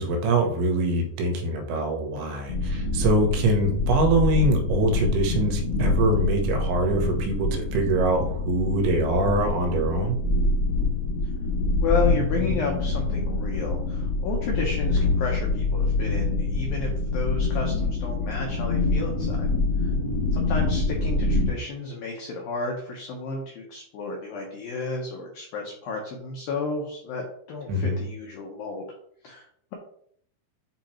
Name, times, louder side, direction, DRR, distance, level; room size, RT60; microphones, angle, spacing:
voice 1, 0.0-10.2 27.7-28.0, right 2 dB, 75° right, 4 dB, 3.1 m, -24 dB
sound 1, 2.5-21.5, left 3 dB, 65° left, 3.1 m, -25 dB
voice 2, 11.8-19.5 19.8-19.9 20.3-28.9 29.2-29.7, left 4 dB, 80° left, 0 dB, 2.0 m, -32 dB
8.3 x 2.9 x 4.3 m, 0.64 s
omnidirectional pair, 5.5 m